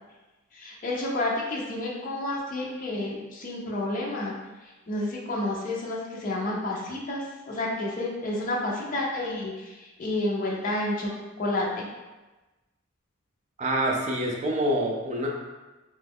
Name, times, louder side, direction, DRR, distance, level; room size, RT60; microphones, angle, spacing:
voice 1, 0.5-4.3 4.9-9.7 10.0-11.1 11.4-11.9, left 1 dB, 40° left, -3 dB, 0.5 m, -30 dB
voice 2, 13.6-15.3, right 1 dB, 35° right, -1 dB, 0.5 m, -26 dB
2.9 x 2.2 x 3.4 m, 1.1 s
head